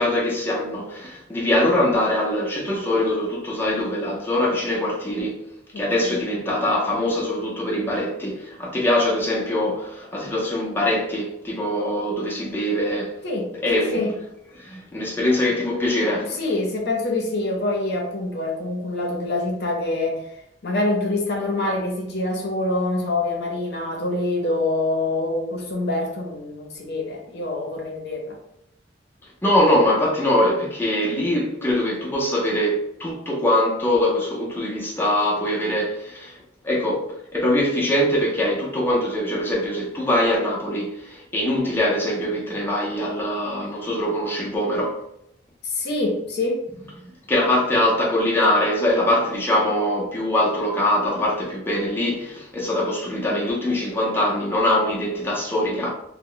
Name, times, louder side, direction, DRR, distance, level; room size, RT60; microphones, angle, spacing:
voice 1, 0.0-5.4 5.8-13.2 13.6-14.2 14.6-16.4 29.4-36.4 36.6-45.0 47.3-55.9, left 1 dB, 10° left, 0.5 m, -23 dB
voice 2, 5.7-6.2 13.2-14.1 16.3-20.2 20.6-28.4 45.6-46.6, left 2 dB, 60° left, 0.6 m, -25 dB
2.1 x 2.0 x 3.7 m
head